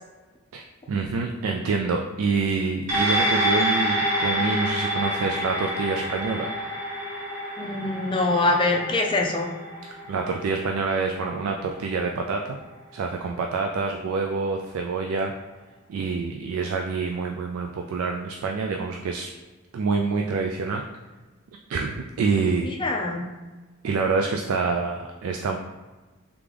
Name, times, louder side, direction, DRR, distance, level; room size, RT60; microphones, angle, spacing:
voice 1, 0.5-6.5 10.1-12.6 12.9-15.3 15.9-19.3 19.7-20.8 21.7-22.7 23.8-25.6, right 4 dB, 85° right, 2 dB, 0.3 m, -26 dB
sound 1, 2.9-11.6 12.0-12.1, equal, 35° right, 1.4 m, -27 dB
voice 2, 7.6-9.5 22.8-23.2, left 2 dB, 25° left, 0 dB, 0.5 m, -24 dB
3.7 x 3.5 x 3.3 m, 1.3 s
head